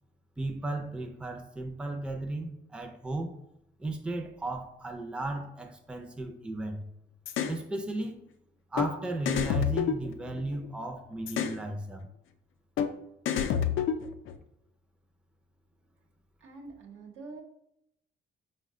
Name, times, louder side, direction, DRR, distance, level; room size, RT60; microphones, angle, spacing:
voice 1, 0.4-3.4 3.8-6.9 7.4-8.2 8.7-12.1, right 2 dB, 5° right, 0.5 m, -35 dB
sound 1, 7.3-7.6 8.8-8.9 9.3-10.7 11.3-11.6 12.8-12.9 13.3-14.4, left 8 dB, 80° left, 0.4 m, -28 dB
voice 2, 16.4-17.4, right 3 dB, 80° right, 0.9 m, -45 dB
4.8 x 2.2 x 3.6 m
cardioid pair, 90°, 20 cm